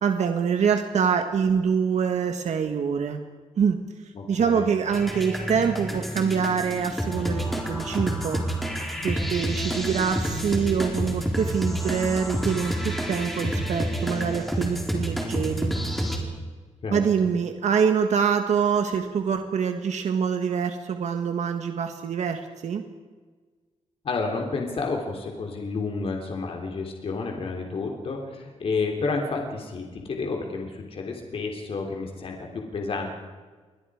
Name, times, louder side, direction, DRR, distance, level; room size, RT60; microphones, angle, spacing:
voice 1, 0.0-3.2 3.6-3.8 4.3-8.4 9.0-15.7 16.9-22.8, right 6 dB, 70° right, 6 dB, 1.6 m, -25 dB
voice 2, 4.1-4.7 16.8-17.0 24.0-33.1, left 4 dB, 50° left, 2 dB, 3.3 m, -30 dB
sound 1, 4.9-16.2, equal, ahead, 4.0 m, -29 dB
28.0 x 23.5 x 4.9 m, 1.4 s
wide cardioid pair, 155°, 12 cm